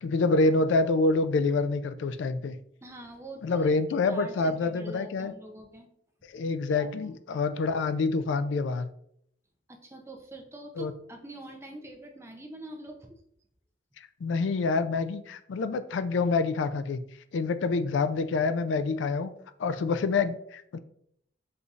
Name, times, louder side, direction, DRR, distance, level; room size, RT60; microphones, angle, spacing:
voice 1, 0.0-2.6 3.4-5.3 6.3-8.9 10.8-10.9 14.2-17.0 17.3-19.3 19.6-20.8, left 3 dB, 75° left, 12 dB, 0.3 m, -27 dB
voice 2, 2.8-3.7 4.1-5.9 6.7-7.1 9.7-13.2, right 1 dB, 15° right, 3 dB, 0.5 m, -44 dB
6.7 x 2.6 x 2.4 m, 0.71 s
head